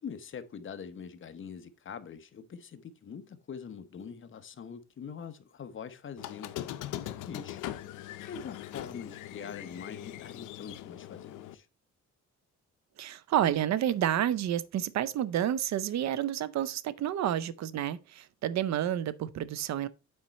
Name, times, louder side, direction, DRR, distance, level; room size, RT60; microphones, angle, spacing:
voice 1, 0.0-6.5 7.3-7.6 8.1-11.7, left 6 dB, 40° left, 1.0 m, -44 dB
Squeak, 6.2-11.5, left 13 dB, 85° left, 0.6 m, -41 dB
voice 2, 13.0-19.9, right 11 dB, 65° right, 0.6 m, -30 dB
8.7 x 4.4 x 4.1 m
cardioid pair, 90°, 30 cm